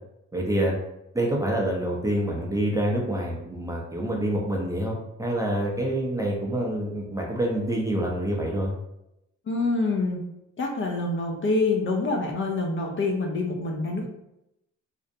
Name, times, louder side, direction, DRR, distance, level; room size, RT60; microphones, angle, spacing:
voice 1, 0.3-0.7 1.1-8.7, right 1 dB, 10° right, -2 dB, 0.5 m, -27 dB
voice 2, 9.5-10.2 10.6-14.1, left 3 dB, 40° left, 1 dB, 0.5 m, -26 dB
2.5 x 2.0 x 2.6 m, 0.85 s
cardioid pair, 90°, 30 cm